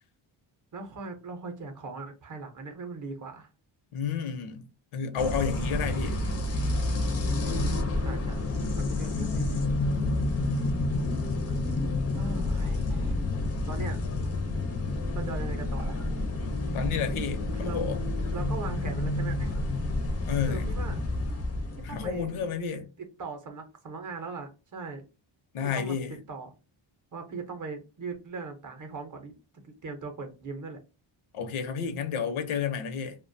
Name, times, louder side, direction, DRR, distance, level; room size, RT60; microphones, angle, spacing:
voice 1, 0.7-3.5 7.4-8.4 8.7-9.7 12.1-13.1 13.7-14.0 15.1-16.0 17.5-17.8 18.3-19.6 20.5-21.0 21.8-22.3 23.0-25.0 25.6-26.0 26.3-26.5 27.1-29.3 29.6-30.8, right 4 dB, 40° right, 0.6 m, -39 dB
voice 2, 3.9-4.7 4.9-6.2 16.7-18.0 20.3-20.8 21.8-22.9 25.5-26.2 31.3-33.2, left 7 dB, 75° left, 0.7 m, -31 dB
sound 1, 5.2-22.4, left 2 dB, 30° left, 0.4 m, -29 dB
2.3 x 2.2 x 2.5 m
cardioid pair, 135°, 49 cm